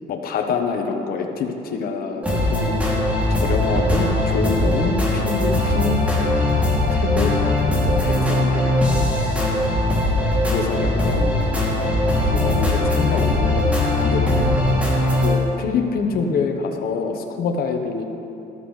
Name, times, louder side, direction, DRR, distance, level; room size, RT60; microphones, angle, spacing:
voice 1, 0.1-2.8 3.3-6.0 6.9-7.3 8.0-8.7 10.5-12.0 12.2-14.4 15.2-18.0, left 5 dB, 60° left, 3 dB, 1.2 m, -26 dB
sound 1, 2.2-15.3, left 1 dB, 10° right, 2.8 m, -20 dB
13.5 x 12.5 x 3.3 m, 2.8 s
cardioid pair, 110°, 17 cm